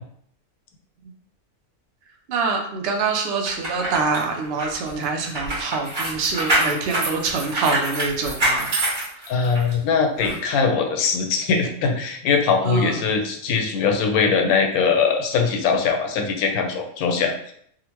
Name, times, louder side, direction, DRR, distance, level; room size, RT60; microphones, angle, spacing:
voice 1, 2.3-8.7 12.6-13.0, right 4 dB, 65° right, 3 dB, 0.6 m, -25 dB
sound 1, 3.5-9.7 10.2-10.3, right 1 dB, 45° right, 1.3 m, -25 dB
voice 2, 9.3-17.5, left 5 dB, 80° left, 4 dB, 1.0 m, -21 dB
3.7 x 2.1 x 2.8 m, 0.66 s
omnidirectional pair, 1.6 m